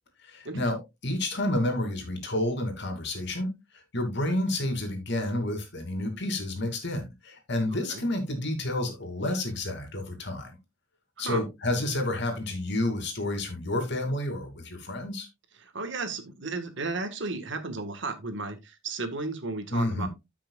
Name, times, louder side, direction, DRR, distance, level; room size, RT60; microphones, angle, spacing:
voice 1, 0.2-3.5 3.9-10.5 11.2-15.3 19.7-20.1, left 1 dB, 60° left, 2.7 m, -30 dB
voice 2, 15.6-20.1, right 3 dB, 70° right, 1.6 m, -34 dB
14.0 x 5.9 x 2.4 m
head